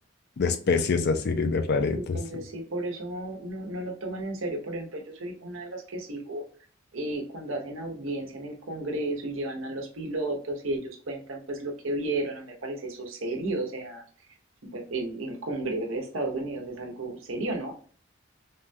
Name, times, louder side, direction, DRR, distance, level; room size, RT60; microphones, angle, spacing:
voice 1, 0.4-2.4, left 4 dB, 55° left, 0.4 m, -26 dB
voice 2, 1.9-6.4 6.9-14.0 14.7-17.7, right 2 dB, 85° right, 0.9 m, -33 dB
3.6 x 2.2 x 2.6 m
head